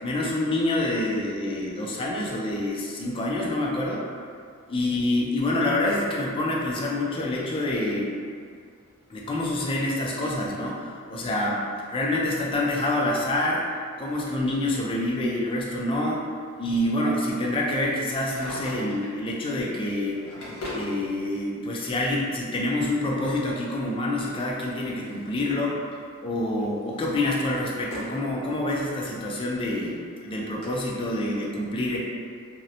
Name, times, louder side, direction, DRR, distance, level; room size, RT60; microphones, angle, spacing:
voice 1, 0.0-4.0 4.7-8.1 9.1-13.6 14.0-16.2 16.6-20.2 20.7-25.8 26.2-32.0, left 1 dB, 25° left, -3 dB, 0.3 m, -27 dB
Drawer open or close, 18.2-19.2 19.9-20.9 22.0-22.1 23.8-25.4 25.7-26.1 26.6-28.2 28.7-28.8 29.5-29.6 29.8-29.9 30.6-30.7, left 1 dB, 85° left, 0.8 m, -40 dB
2.7 x 2.0 x 2.5 m, 2.2 s
head